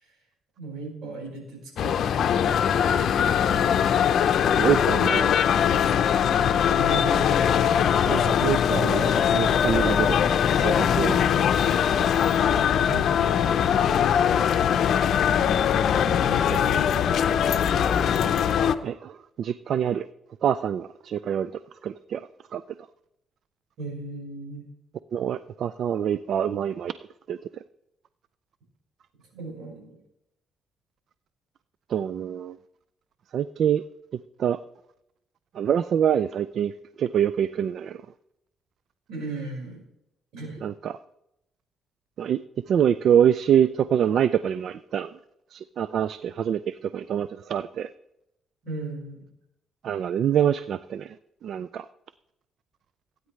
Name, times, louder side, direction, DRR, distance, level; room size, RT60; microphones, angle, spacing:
voice 1, 0.6-3.0 6.7-7.5 12.8-13.1 16.1-17.6 23.8-24.7 29.3-30.0 39.1-39.8 40.3-40.6 48.6-49.2, right 3 dB, 85° right, -1 dB, 4.8 m, -37 dB
sound 1, 1.8-18.7, left 8 dB, 65° left, 0.6 m, -21 dB
voice 2, 4.6-5.4 8.1-10.2 10.6-11.2 18.8-20.1 20.4-22.6 25.1-26.9 27.3-27.6 31.9-32.6 33.3-33.8 34.4-34.6 35.5-38.0 40.6-41.0 42.2-42.4 42.7-45.2 45.5-47.9 49.8-51.2 51.4-51.9, right 9 dB, 65° right, 16 dB, 0.3 m, -25 dB
16.0 x 9.4 x 3.2 m, 0.85 s
cardioid pair, 90°, 0 cm